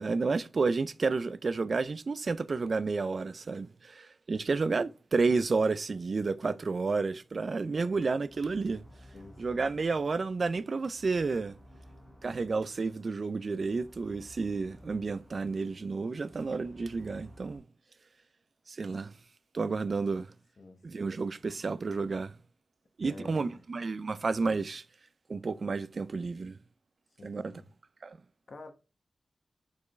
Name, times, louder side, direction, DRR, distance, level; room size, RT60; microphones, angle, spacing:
voice 1, 0.0-8.8 9.4-11.5 12.2-17.6 18.7-19.1 19.5-20.3 20.8-22.4 23.0-24.8 25.3-26.6 27.2-27.5 28.0-28.2, right 4 dB, 50° right, 0.3 m, -31 dB
sound 1, 7.6-17.6, equal, ahead, 1.9 m, -56 dB
voice 2, 7.7-8.1 9.1-9.9 20.6-21.1 23.0-23.6 27.2-27.7 28.5-28.7, left 3 dB, 55° left, 1.1 m, -50 dB
6.8 x 4.7 x 3.1 m
wide cardioid pair, 150°, 0 cm